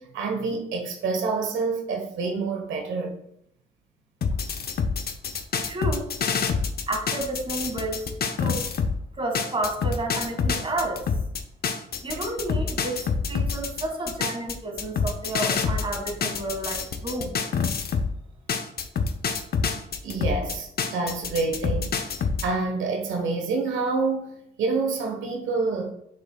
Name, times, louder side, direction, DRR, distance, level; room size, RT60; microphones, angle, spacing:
voice 1, 0.0-3.1 20.0-22.0 22.2-25.9, right 4 dB, 80° right, 1.2 m, -27 dB
sound 1, 4.2-9.0 9.3-18.1 18.5-22.5, left 5 dB, 50° left, 0.8 m, -27 dB
voice 2, 5.7-6.1 6.9-8.0 8.4-8.7 9.2-11.0 12.0-17.4, right 2 dB, 25° right, 1.7 m, -31 dB
7.8 x 6.8 x 2.3 m
cardioid pair, 90°, 20 cm